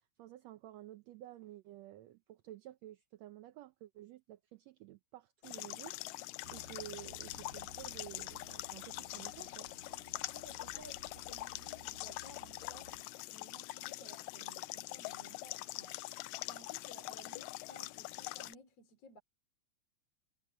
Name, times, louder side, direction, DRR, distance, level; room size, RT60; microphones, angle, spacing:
voice 1, 0.2-6.0 6.5-9.7, right 14 dB, 75° right, 1.6 m, -52 dB
sound 1, 5.4-18.6, left 19 dB, 90° left, 2.2 m, -44 dB
sound 2, 6.4-13.0, right 2 dB, 30° right, 2.4 m, -58 dB
voice 2, 10.3-16.0 16.4-19.2, left 1 dB, 50° left, 4.5 m, -57 dB
omnidirectional pair, 3.8 m